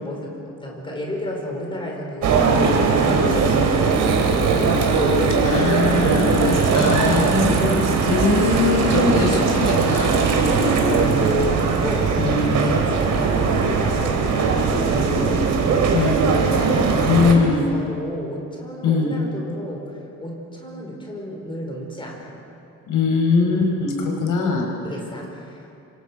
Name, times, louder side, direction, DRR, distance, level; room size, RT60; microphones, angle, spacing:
voice 1, 0.0-6.8 7.1-8.2 8.6-9.6 10.1-16.1 16.6-19.9 20.2-22.3 23.5-23.8 24.8-25.7, equal, 15° left, 0 dB, 4.8 m, -32 dB
sound 1, 2.2-17.3, right 4 dB, 75° right, 3.3 m, -19 dB
voice 2, 5.4-7.8 8.1-10.2 10.5-11.3 12.2-12.6 15.9-16.3 17.1-17.6 18.8-19.1 22.9-24.7, left 4 dB, 85° left, 1 dB, 5.2 m, -21 dB
27.0 x 25.5 x 6.3 m, 2.7 s
wide cardioid pair, 180°, 31 cm